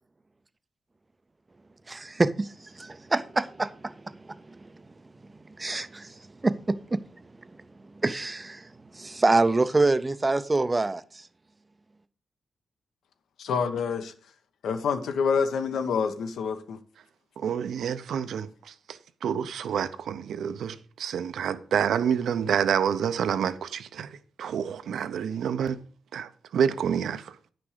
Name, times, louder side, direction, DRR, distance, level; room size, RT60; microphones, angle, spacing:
voice 1, 1.9-2.5 2.8-3.9 4.3-4.4 5.6-6.1 6.4-7.0 8.0-8.6 8.9-11.0, right 2 dB, 15° right, 0.4 m, -25 dB
voice 2, 13.4-14.1 14.6-16.8, left 6 dB, 85° left, 1.0 m, -27 dB
voice 3, 17.4-25.8 26.1-27.3, right 8 dB, 80° right, 0.6 m, -28 dB
9.6 x 6.1 x 4.9 m
wide cardioid pair, 170°, 0 cm